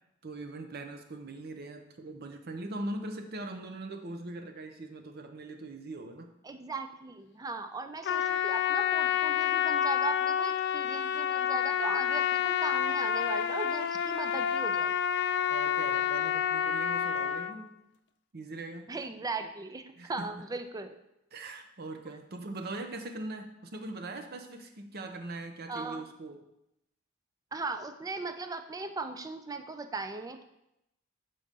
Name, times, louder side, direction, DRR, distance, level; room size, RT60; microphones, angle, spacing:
voice 1, 0.2-6.3 15.5-17.7 18.3-18.9 20.0-20.3 21.3-26.4, right 2 dB, 50° right, 5 dB, 0.7 m, -41 dB
voice 2, 6.4-14.9 18.9-21.0 25.7-26.0 27.5-30.4, right 3 dB, 20° right, 8 dB, 0.4 m, -38 dB
Trumpet, 8.0-17.5, left 9 dB, 55° left, 0.4 m, -29 dB
6.7 x 3.8 x 5.3 m, 0.86 s
head